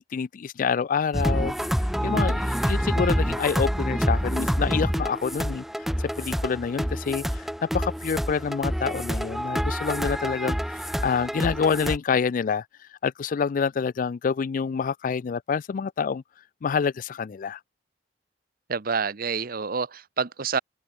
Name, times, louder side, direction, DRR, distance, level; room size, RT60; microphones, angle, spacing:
voice 1, 0.0-1.8 2.0-5.6 6.0-12.6 13.0-16.2 16.6-17.6, left 6 dB, 45° left, 0.3 m, -27 dB
sound 1, 1.1-12.0, equal, ahead, 1.1 m, -27 dB
voice 2, 18.7-20.6, right 5 dB, 55° right, 0.9 m, -28 dB
head